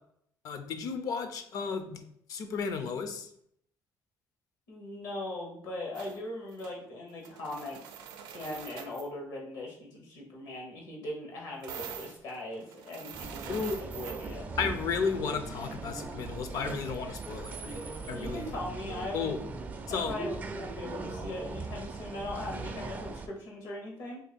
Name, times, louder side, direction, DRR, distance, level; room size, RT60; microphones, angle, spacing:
voice 1, 0.4-2.0 2.3-3.3 13.5-13.8 14.6-18.5 19.1-19.4 19.9-20.1, left 5 dB, 60° left, 8 dB, 0.5 m, -33 dB
voice 2, 4.7-7.8 8.3-14.5 18.1-19.3 19.9-24.2, left 1 dB, 75° left, -1 dB, 1.1 m, -39 dB
sound 1, 5.9-6.2 6.5-6.7 7.1-9.1 11.6-14.3, right 8 dB, 90° right, 0.4 m, -45 dB
sound 2, 13.1-23.3, right 3 dB, 25° right, 0.4 m, -40 dB
2.9 x 2.7 x 4.1 m, 0.70 s
cardioid pair, 140°, 7 cm